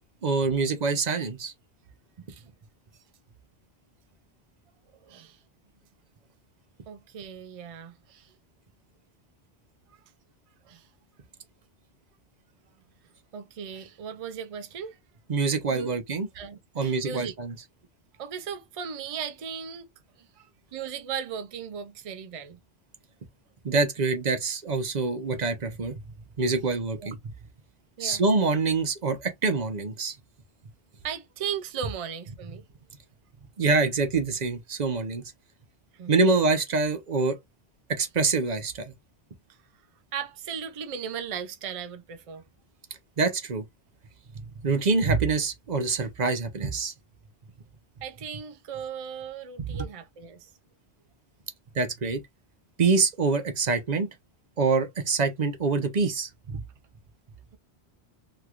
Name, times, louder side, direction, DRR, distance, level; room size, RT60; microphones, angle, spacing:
voice 1, 0.2-1.5 15.3-16.3 16.7-17.6 23.6-26.0 26.4-27.2 28.0-30.2 33.6-35.2 36.1-37.4 37.9-38.9 43.2-43.6 44.4-46.9 49.7-49.8 51.7-52.2 52.8-54.1 54.6-56.6, right 4 dB, 45° right, 0.8 m, -25 dB
voice 2, 5.0-5.4 6.9-8.3 10.7-10.9 13.3-15.0 15.7-15.9 16.3-17.3 18.2-19.9 20.2-22.6 27.0-27.1 28.0-28.2 31.0-32.6 35.9-36.4 40.1-42.4 48.0-50.5, right 7 dB, 60° right, 0.3 m, -37 dB
3.1 x 2.9 x 2.3 m
omnidirectional pair, 1.1 m